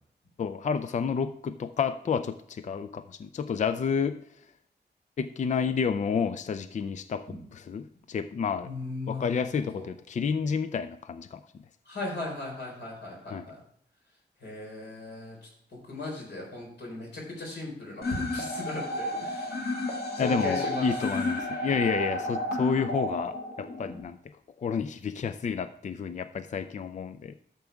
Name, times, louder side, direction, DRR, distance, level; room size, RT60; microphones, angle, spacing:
voice 1, 0.4-4.2 5.2-8.7 9.1-11.6 13.3-13.5 20.2-24.2 24.6-27.3, left 6 dB, 45° left, 11 dB, 0.4 m, -30 dB
voice 2, 8.7-9.4 9.7-9.8 11.9-13.6 14.4-15.4 15.7-19.5 20.2-20.9, left 2 dB, 80° left, -1 dB, 4.4 m, -37 dB
sound 1, 18.0-24.0, left 1 dB, 65° left, 2.0 m, -32 dB
12.5 x 7.1 x 3.4 m, 0.69 s
wide cardioid pair, 175°, 18 cm